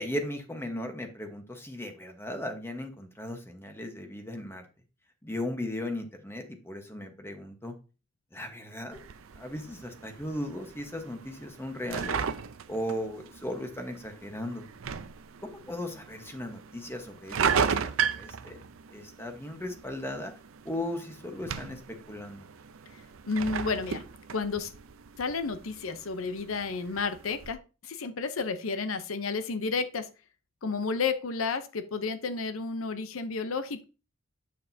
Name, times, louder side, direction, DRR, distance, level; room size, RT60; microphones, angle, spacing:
voice 1, 0.0-4.6 5.2-7.7 8.3-9.0 9.4-12.2 12.7-14.6 15.4-18.6 18.9-20.3 20.6-22.5, left 1 dB, 10° left, 5 dB, 1.1 m, -37 dB
sound 1, 8.9-27.5, right 6 dB, 75° right, 0.5 m, -36 dB
voice 2, 23.3-24.0 24.3-24.7 25.2-30.1 30.6-33.8, left 4 dB, 80° left, 10 dB, 0.7 m, -31 dB
7.6 x 6.6 x 2.7 m, 0.32 s
head